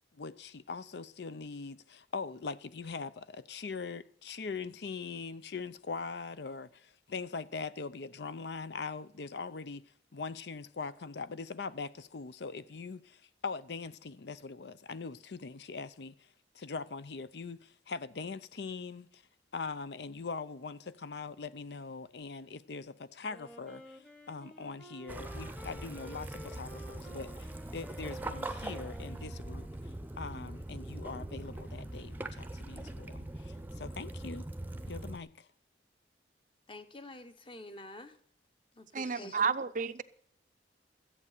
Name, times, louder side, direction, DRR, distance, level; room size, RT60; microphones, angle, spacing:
voice 1, 0.1-9.8 10.1-16.3 16.5-19.2 19.5-29.7 30.2-34.4 34.9-35.5, left 4 dB, 65° left, 0.6 m, -42 dB
Wind instrument woodwind instrument, 23.2-30.0, equal, 5° left, 1.1 m, -53 dB
Waves surf / Splash splatter / Trickle dribble, 25.1-35.2, right 1 dB, 10° right, 0.7 m, -42 dB
voice 2, 36.7-38.2 38.7-39.6, left 2 dB, 30° left, 1.1 m, -48 dB
voice 3, 38.9-40.0, right 6 dB, 45° right, 0.5 m, -31 dB
14.0 x 8.5 x 6.6 m
head